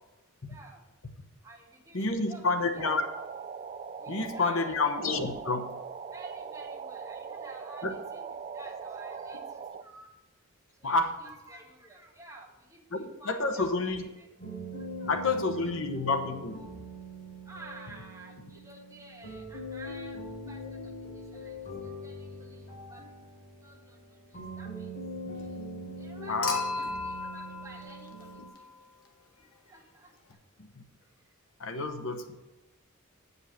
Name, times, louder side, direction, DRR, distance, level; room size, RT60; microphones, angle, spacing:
voice 1, 0.5-0.8 1.4-2.6 4.0-4.7 6.1-8.2 8.5-10.1 10.8-14.3 14.7-15.3 15.6-15.7 17.4-23.0 23.6-24.9 25.9-28.7 29.6-30.1, right 2 dB, 15° right, -1 dB, 1.7 m, -51 dB
voice 2, 1.9-3.0 4.1-5.8 7.8-7.9 10.8-11.2 12.9-14.1 15.1-16.7 20.6-20.7 26.3-26.6 30.6-30.8 31.6-32.3, left 3 dB, 65° left, 6 dB, 1.0 m, -29 dB
sound 1, 2.8-9.8, right 6 dB, 35° right, 0.3 m, -41 dB
sound 2, 14.4-28.5, equal, 40° left, 3.6 m, -42 dB
Human group actions / Chink clink / Liquid, 26.4-28.8 30.3-30.4, left 4 dB, 90° left, 1.3 m, -36 dB
7.9 x 5.5 x 7.1 m, 1.1 s
head